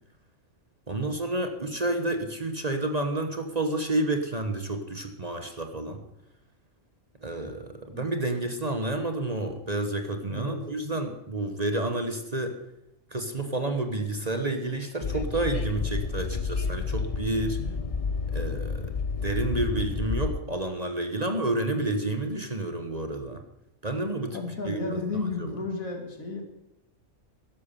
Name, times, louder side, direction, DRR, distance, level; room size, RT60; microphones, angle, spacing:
voice 1, 0.9-6.0 7.2-12.6 13.1-17.6 18.3-18.9 19.2-23.4 23.8-24.4 24.6-25.0 25.4-25.5, right 2 dB, 30° right, 6 dB, 1.1 m, -30 dB
voice 2, 10.2-10.6 17.6-17.9 24.3-26.4, left 3 dB, 80° left, 3 dB, 2.8 m, -33 dB
Train, 15.0-20.4, left 5 dB, 40° left, 0.5 m, -30 dB
13.0 x 11.5 x 6.8 m, 0.87 s
omnidirectional pair, 1.4 m